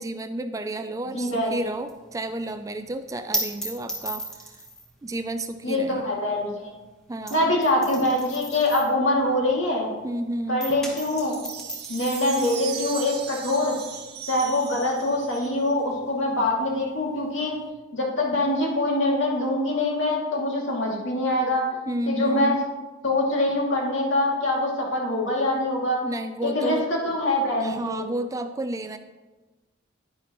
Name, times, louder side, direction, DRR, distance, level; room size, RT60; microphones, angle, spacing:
voice 1, 0.0-4.2 5.0-6.1 7.1-7.5 10.0-10.6 21.9-22.6 26.0-26.9 27.6-29.0, right 1 dB, 15° right, 10 dB, 0.3 m, -31 dB
voice 2, 1.1-1.6 5.6-6.8 7.3-9.9 10.5-11.4 11.9-13.7 14.3-17.6 17.9-21.7 22.1-22.6 23.0-26.0 26.4-28.0, left 1 dB, 70° left, -3 dB, 2.3 m, -24 dB
sound 1, 1.3-10.2 10.5-17.7, right 1 dB, 5° left, 1.3 m, -37 dB
sound 2, 11.0-15.7, right 9 dB, 55° right, 0.8 m, -38 dB
10.0 x 9.9 x 3.0 m, 1.2 s
head